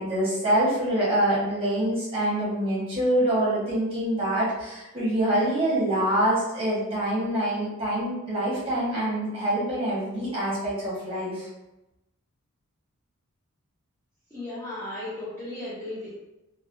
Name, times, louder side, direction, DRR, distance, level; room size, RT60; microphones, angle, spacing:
voice 1, 0.0-11.5, right 1 dB, 25° right, -8 dB, 1.1 m, -25 dB
voice 2, 14.3-16.2, left 1 dB, 10° left, -10 dB, 0.5 m, -35 dB
3.2 x 2.2 x 2.5 m, 0.95 s
head